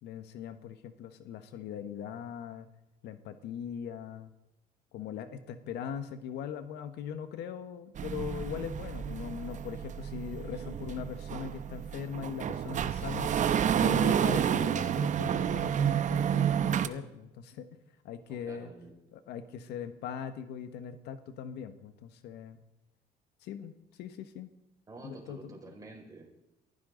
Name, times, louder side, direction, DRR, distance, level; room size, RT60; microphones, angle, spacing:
voice 1, 0.0-2.7 3.0-4.3 4.9-13.4 13.8-17.6 18.0-18.7 19.1-22.6 23.4-24.5 25.0-25.7, left 8 dB, 80° left, 10 dB, 1.3 m, -40 dB
sound 1, 8.0-16.9, right 9 dB, 45° right, 0.9 m, -30 dB
voice 2, 18.3-18.9 24.9-26.3, right 2 dB, 20° right, -1 dB, 5.6 m, -49 dB
23.0 x 15.5 x 3.9 m, 0.92 s
cardioid pair, 110°, 17 cm